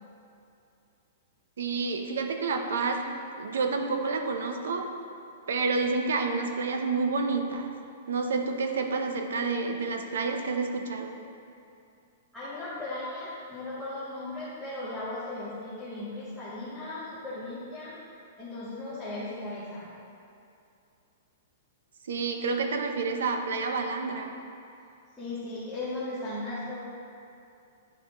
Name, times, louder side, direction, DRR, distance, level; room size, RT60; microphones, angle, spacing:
voice 1, 1.6-3.0 3.4-4.8 5.5-7.7 8.1-11.2 22.0-24.3, right 4 dB, 85° right, 5 dB, 0.6 m, -29 dB
voice 2, 12.3-17.9 18.4-19.9 25.2-26.8, left 2 dB, ahead, -13 dB, 0.9 m, -37 dB
9.4 x 3.8 x 3.0 m, 2.6 s
hypercardioid pair, 175°, 0 cm